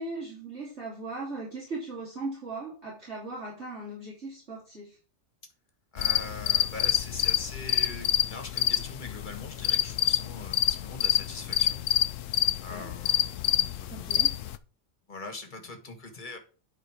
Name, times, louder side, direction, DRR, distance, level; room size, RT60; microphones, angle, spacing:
voice 1, 0.0-5.0 12.6-12.9 13.9-14.4, right 2 dB, 55° right, -6 dB, 3.1 m, -38 dB
voice 2, 5.9-11.8 12.6-14.2 15.1-16.4, left 3 dB, 40° left, 5 dB, 1.5 m, -42 dB
Cricket Chirping, 6.0-14.6, left 11 dB, 75° left, 0.9 m, -27 dB
9.2 x 4.4 x 4.8 m, 0.38 s
omnidirectional pair, 1.4 m